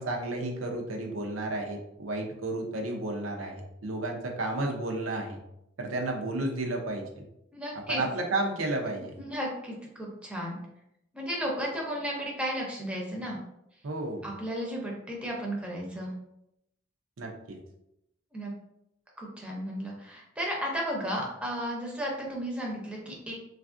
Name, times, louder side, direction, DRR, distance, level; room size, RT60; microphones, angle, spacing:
voice 1, 0.0-5.4 5.8-7.3 7.9-9.2 13.8-14.3 17.2-17.6, right 2 dB, 85° right, 1 dB, 0.6 m, -32 dB
voice 2, 7.5-8.0 9.2-10.6 11.1-13.4 14.2-16.1 18.3-18.5 19.2-23.3, equal, 5° right, -2 dB, 0.6 m, -34 dB
3.3 x 2.4 x 2.4 m, 0.82 s
head